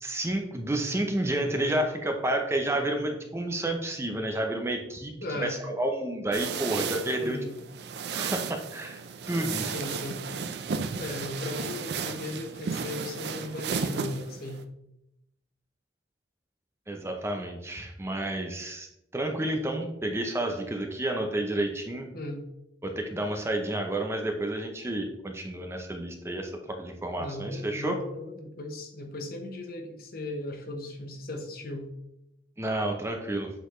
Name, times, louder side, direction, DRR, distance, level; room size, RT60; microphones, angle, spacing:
voice 1, 0.0-7.4 8.1-9.0 9.3-9.7 16.9-18.9 19.1-22.1 22.8-26.5 26.8-28.0 32.6-33.5, right 1 dB, 15° right, 3 dB, 0.6 m, -30 dB
voice 2, 5.2-5.6 7.2-7.5 9.6-10.2 11.0-14.6 22.1-22.4 27.2-31.9, left 2 dB, 55° left, 4 dB, 0.9 m, -37 dB
sound 1, 6.3-14.6, right 5 dB, 65° right, 0.4 m, -34 dB
7.8 x 4.0 x 3.1 m, 0.85 s
head